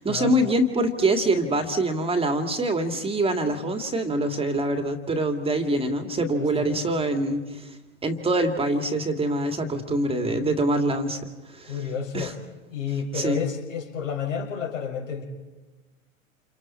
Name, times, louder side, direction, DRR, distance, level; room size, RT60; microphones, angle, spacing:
voice 1, 0.0-7.7 8.0-11.7 12.1-12.3 13.1-13.4, right 1 dB, 15° right, 6 dB, 2.2 m, -25 dB
voice 2, 6.4-6.8 11.7-12.3 12.7-15.2, left 6 dB, 70° left, 2 dB, 6.4 m, -30 dB
29.5 x 29.0 x 4.4 m, 1.2 s
hypercardioid pair, 100°, 40 cm